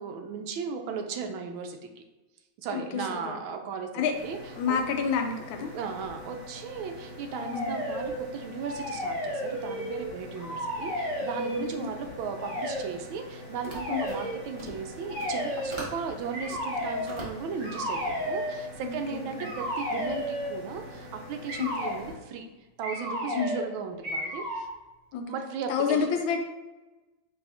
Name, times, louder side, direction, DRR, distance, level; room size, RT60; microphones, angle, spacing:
voice 1, 0.0-2.0 2.6-4.4 4.7-4.8 5.6-22.5 22.8-24.7 25.3-26.1, right 5 dB, 80° right, 5 dB, 1.3 m, -36 dB
sound 1, 4.1-22.1, left 1 dB, 40° left, 0.3 m, -45 dB
voice 2, 4.6-5.7 7.5-7.7 11.5-11.9 13.9-14.0 18.8-19.5 21.6-21.7 23.3-23.6 25.1-25.2 25.7-26.4, left 6 dB, 75° left, 4 dB, 1.4 m, -29 dB
sound 2, 7.3-8.2 8.6-10.1 10.4-11.7 12.4-12.9 13.7-14.4 15.1-15.8 16.3-17.1 17.6-18.6 19.4-20.6 21.5-22.0 22.8-23.7 24.0-24.7, equal, 60° right, 2.0 m, -33 dB
sound 3, 13.6-16.0 16.3-18.0, right 1 dB, 25° right, 0.7 m, -42 dB
4.7 x 4.1 x 2.6 m, 1.1 s
omnidirectional pair, 2.3 m